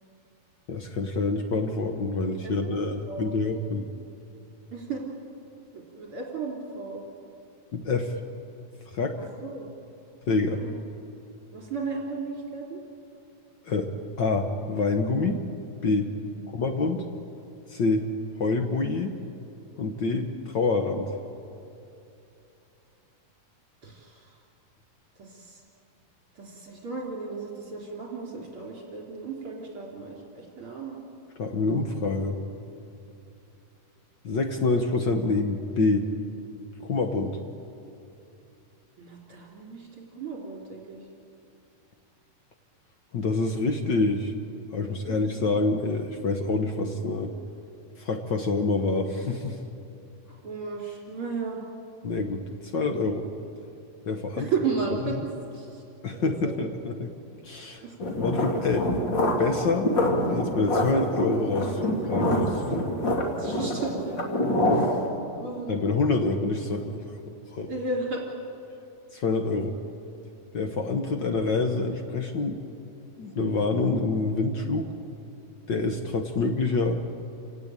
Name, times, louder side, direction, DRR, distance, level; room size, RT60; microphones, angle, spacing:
voice 1, 0.7-3.9 7.7-8.1 8.9-9.2 10.3-10.6 13.6-13.9 14.2-15.4 15.8-16.1 16.5-17.0 17.7-18.1 18.4-19.1 19.8-21.1 31.4-32.4 34.2-36.1 36.8-37.4 43.1-44.3 44.7-47.3 48.0-49.6 52.0-52.4 52.7-53.3 54.0-54.5 56.0-57.1 57.4-57.8 58.2-58.9 59.4-59.9 60.3-62.9 65.7-67.0 67.5-67.7 69.1-69.8 70.5-72.6 73.2-74.9 75.7-77.0, left 3 dB, 80° left, 5 dB, 1.0 m, -26 dB
voice 2, 2.4-3.3 4.7-5.0 5.7-7.0 9.2-9.7 10.5-10.8 11.5-12.8 16.3-16.4 23.8-24.4 25.2-25.6 26.3-31.0 39.0-41.0 45.0-45.5 50.2-51.6 54.4-55.2 55.5-55.8 56.1-56.6 57.8-57.9 63.4-64.3 64.7-65.0 65.3-65.8 67.7-68.2, right 4 dB, 40° right, -2 dB, 3.9 m, -35 dB
sound 1, 58.0-65.1, left 1 dB, 35° left, 2.8 m, -26 dB
29.0 x 17.5 x 8.9 m, 2.8 s
omnidirectional pair, 4.0 m